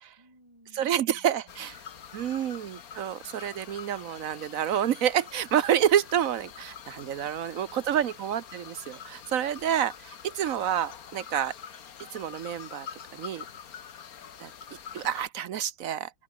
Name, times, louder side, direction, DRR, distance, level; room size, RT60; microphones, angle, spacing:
voice 1, 0.2-2.7, right 1 dB, 15° right, 7.4 m, -62 dB
voice 2, 0.8-1.7 2.1-11.5 12.1-12.9 13.1-13.4 14.4-14.5 14.9-16.1, right 10 dB, 60° right, 1.0 m, -28 dB
sound 1, 1.5-15.3, left 8 dB, 55° left, 1.7 m, -46 dB
open air
omnidirectional pair, 1.9 m